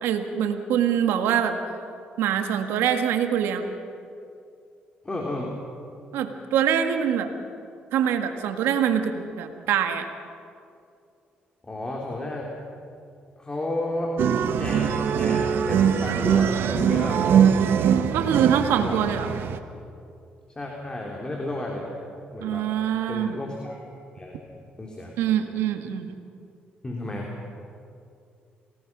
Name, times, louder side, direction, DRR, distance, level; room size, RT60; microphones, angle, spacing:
voice 1, 0.0-1.6 2.2-3.7 6.1-7.3 7.9-10.1 18.1-19.3 22.4-23.4 25.2-26.1, right 9 dB, 90° right, 7 dB, 1.7 m, -24 dB
voice 2, 5.0-5.5 11.6-12.5 13.4-14.2 14.5-17.2 18.1-18.4 18.8-19.3 20.6-21.9 22.3-22.7 23.1-23.8 24.2-24.3 24.8-25.2 26.8-27.3, left 1 dB, 20° left, -1 dB, 3.5 m, -32 dB
sound 1, 14.2-19.6, right 8 dB, 75° right, 1.2 m, -22 dB
28.0 x 18.0 x 6.1 m, 2.5 s
cardioid pair, 80°, 4 cm